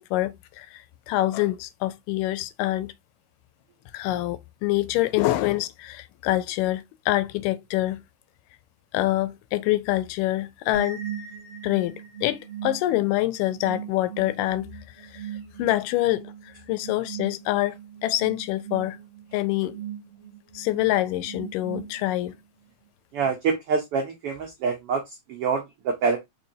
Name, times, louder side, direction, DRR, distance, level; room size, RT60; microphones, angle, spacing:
voice 1, 0.0-2.9 3.9-8.0 8.9-11.0 11.6-14.7 15.0-15.3 15.6-19.0 19.3-19.8 20.6-22.4, left 16 dB, 90° left, 2.2 m, -26 dB
sound 1, 10.7-22.4, right 9 dB, 35° right, 1.6 m, -40 dB
voice 2, 23.1-26.2, right 5 dB, 80° right, 1.2 m, -26 dB
4.5 x 4.2 x 2.7 m
omnidirectional pair, 3.7 m